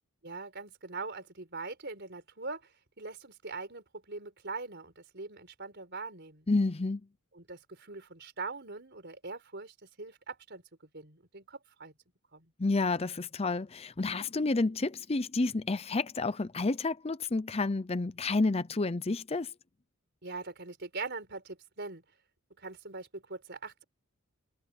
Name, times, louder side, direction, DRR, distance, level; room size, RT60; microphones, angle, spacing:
voice 1, 0.2-6.5 7.3-10.6 10.9-11.9 12.3-12.5 20.2-22.0 22.6-23.8, right 3 dB, 50° right, 4.5 m, -42 dB
voice 2, 6.5-7.0 12.6-19.5, left 3 dB, 30° left, 0.6 m, -30 dB
head